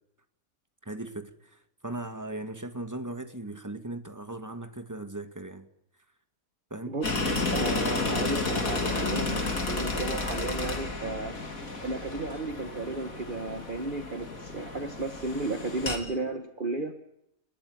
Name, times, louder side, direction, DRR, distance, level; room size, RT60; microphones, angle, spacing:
voice 1, 0.8-5.7 6.7-6.9, right 2 dB, 10° right, 8 dB, 2.1 m, -38 dB
voice 2, 6.9-11.4 11.8-17.0, right 2 dB, 35° right, 6 dB, 1.8 m, -34 dB
sound 1, 7.0-16.0, left 3 dB, 70° left, 3.6 m, -32 dB
29.5 x 20.5 x 9.8 m, 0.81 s
omnidirectional pair, 1.5 m